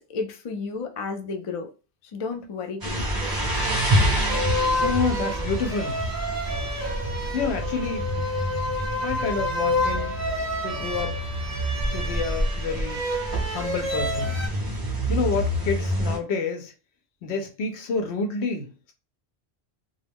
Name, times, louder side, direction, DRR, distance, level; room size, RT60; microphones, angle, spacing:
voice 1, 0.0-1.7 2.1-3.4, left 4 dB, 55° left, 0.3 m, -33 dB
sound 1, 2.8-16.2, equal, 30° right, 0.4 m, -28 dB
sound 2, 3.2-14.5, left 1 dB, 20° left, 0.6 m, -30 dB
voice 2, 4.8-6.1 7.3-8.1 9.0-10.2 10.6-11.2 11.9-13.0 13.5-14.4 15.1-16.7 17.2-18.9, left 4 dB, 80° left, 0.9 m, -29 dB
2.3 x 2.0 x 3.3 m
omnidirectional pair, 1.1 m